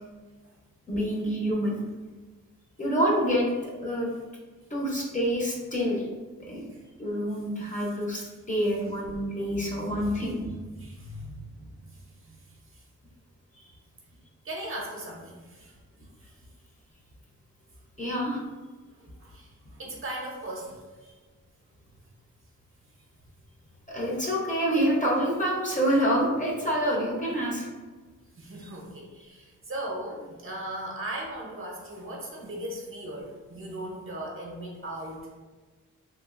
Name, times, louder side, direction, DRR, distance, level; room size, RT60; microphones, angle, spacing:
voice 1, 0.9-1.8 2.8-4.1 4.7-6.0 6.5-6.6 7.0-10.4 13.6-13.7 18.0-18.4 23.9-27.7, equal, 25° left, -3 dB, 0.6 m, -27 dB
voice 2, 9.5-10.1 10.7-12.4 12.7-12.8 14.4-15.8 19.2-20.8 28.4-35.2, right 1 dB, 40° right, -1 dB, 0.6 m, -38 dB
3.1 x 2.4 x 2.4 m, 1.3 s
wide cardioid pair, 105°, 32 cm